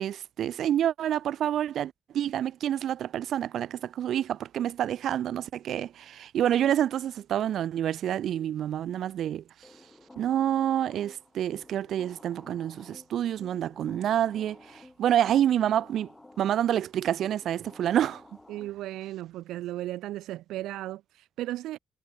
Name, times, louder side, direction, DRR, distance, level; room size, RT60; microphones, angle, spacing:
voice 1, 0.0-9.4 10.2-16.1 16.4-18.2, right 10 dB, 70° right, 1.7 m, -28 dB
sound 1, 9.6-19.1, left 2 dB, 15° left, 5.9 m, -53 dB
voice 2, 18.5-21.8, right 15 dB, 90° right, 1.1 m, -35 dB
cardioid pair, 90°, 0 cm